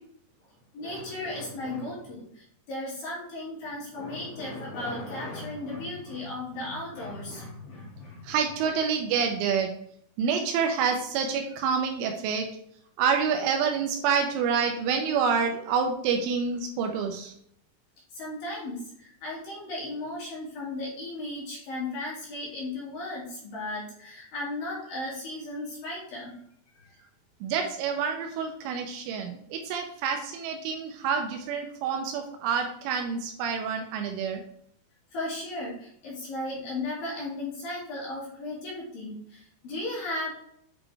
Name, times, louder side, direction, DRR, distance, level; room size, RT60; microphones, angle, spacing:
voice 1, 0.7-8.4 18.1-26.4 26.7-26.9 35.1-40.3, left 2 dB, 60° left, -5 dB, 2.9 m, -35 dB
voice 2, 8.2-9.7 10.2-12.5 13.0-17.3 27.4-34.4, right 6 dB, 85° right, 3 dB, 3.2 m, -27 dB
8.8 x 4.1 x 3.3 m, 0.69 s
omnidirectional pair, 5.6 m